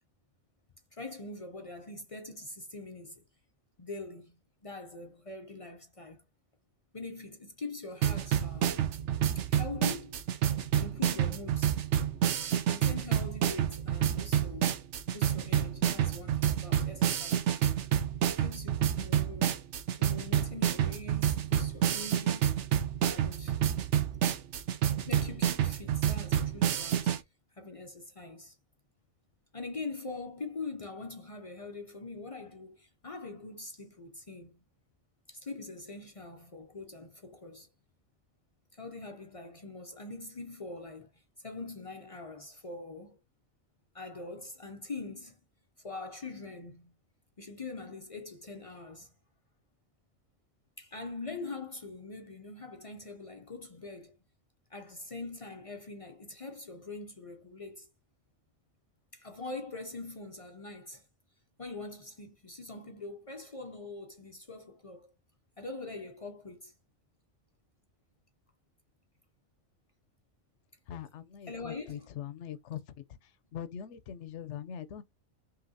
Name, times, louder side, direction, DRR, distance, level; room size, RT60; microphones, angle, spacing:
voice 1, 0.9-3.2 3.8-6.2 6.9-9.0 9.3-10.2 10.8-11.8 12.7-17.5 18.2-19.6 20.0-22.6 23.0-23.6 25.1-27.1 27.5-28.6 29.5-34.6 35.3-37.7 38.7-43.2 43.9-45.4 45.8-46.9 47.4-49.1 50.8-54.2 54.7-57.9 59.1-61.0 61.6-65.1 65.6-66.7 71.5-72.1, left 3 dB, 45° left, 0.4 m, -43 dB
sound 1, 8.0-27.2, right 10 dB, 65° right, 0.9 m, -29 dB
voice 2, 70.9-72.8 73.5-75.0, left 9 dB, 65° left, 0.9 m, -41 dB
5.7 x 2.8 x 2.7 m
omnidirectional pair, 1.4 m